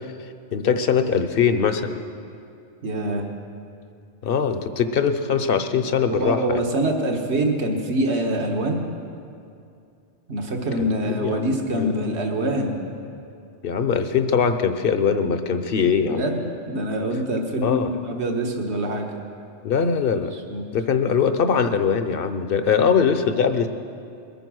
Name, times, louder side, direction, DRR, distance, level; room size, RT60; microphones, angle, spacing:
voice 1, 0.5-2.0 4.2-6.6 10.8-11.9 13.6-16.2 17.6-17.9 19.6-20.3 20.7-23.7, left 6 dB, 55° left, 9 dB, 1.0 m, -22 dB
voice 2, 2.8-3.2 6.1-8.8 10.3-12.8 16.0-16.4 16.7-19.1 20.1-20.6, right 1 dB, 70° right, 3 dB, 1.7 m, -25 dB
21.5 x 9.3 x 6.2 m, 2.5 s
omnidirectional pair, 1.2 m